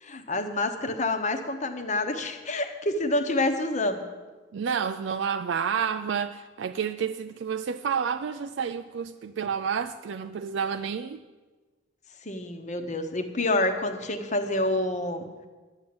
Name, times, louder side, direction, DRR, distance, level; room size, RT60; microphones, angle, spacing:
voice 1, 0.0-4.0 12.2-15.3, left 2 dB, 35° left, 7 dB, 1.0 m, -28 dB
voice 2, 4.5-11.2, right 7 dB, 65° right, 9 dB, 0.4 m, -30 dB
11.5 x 7.4 x 8.6 m, 1.3 s
head